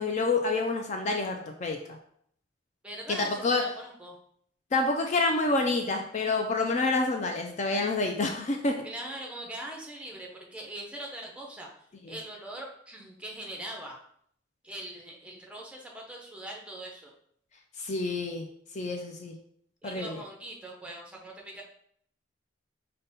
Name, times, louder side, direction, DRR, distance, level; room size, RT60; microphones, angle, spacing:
voice 1, 0.0-1.8 3.1-3.2 3.4-3.6 4.7-8.8 17.8-18.5 18.7-19.3 19.8-20.2, left 3 dB, 35° left, 3 dB, 0.4 m, -28 dB
voice 2, 2.8-4.2 8.8-11.7 12.1-14.0 14.6-17.1 19.8-21.6, right 1 dB, 5° right, -1 dB, 0.7 m, -41 dB
5.1 x 2.2 x 4.0 m, 0.67 s
head